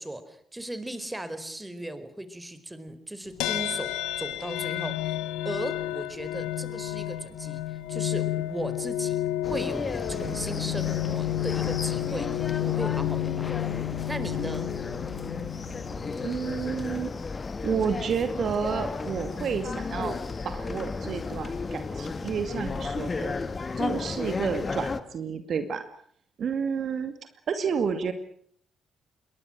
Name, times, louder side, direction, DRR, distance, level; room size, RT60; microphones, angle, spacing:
voice 1, 0.0-5.2 5.4-9.2 9.5-14.7, right 1 dB, 10° right, 12 dB, 4.6 m, -37 dB
sound 1, 3.4-16.9, left 14 dB, 70° left, 1.3 m, -31 dB
sound 2, 9.4-25.0, left 4 dB, 35° left, 2.1 m, -34 dB
voice 2, 16.2-17.1 17.6-20.2 20.4-23.4 23.7-25.8 26.4-28.1, right 6 dB, 55° right, 9 dB, 2.4 m, -30 dB
28.5 x 22.5 x 6.5 m, 0.63 s
figure-of-eight pair, 45°, 0 cm